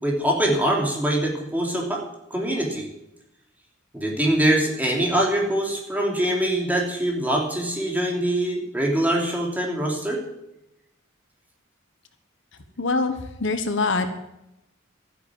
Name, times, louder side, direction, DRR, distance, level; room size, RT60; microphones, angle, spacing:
voice 1, 0.0-2.0 2.3-2.9 3.9-10.2, right 1 dB, 10° right, -2 dB, 3.1 m, -23 dB
voice 2, 12.8-14.1, left 3 dB, 65° left, 8 dB, 1.3 m, -24 dB
12.5 x 10.0 x 7.4 m, 0.87 s
head